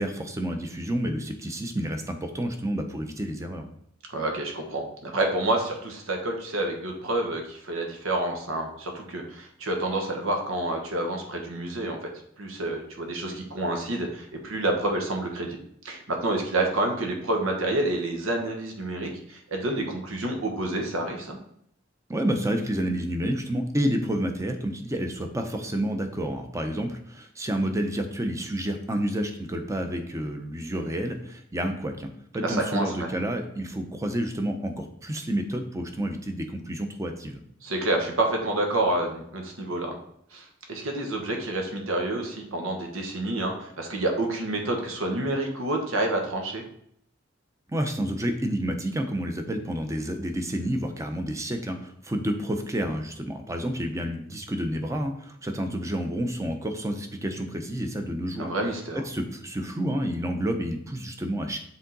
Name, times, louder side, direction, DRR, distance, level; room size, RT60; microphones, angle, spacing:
voice 1, 0.0-3.7 22.1-37.4 47.7-58.5 59.0-61.6, right 1 dB, 15° right, 5 dB, 0.6 m, -29 dB
voice 2, 4.1-12.1 12.4-15.6 15.8-21.4 32.4-33.1 37.6-40.0 40.3-46.6 58.4-59.0, right 2 dB, 85° right, 3 dB, 1.3 m, -28 dB
7.0 x 3.7 x 4.0 m, 0.69 s
head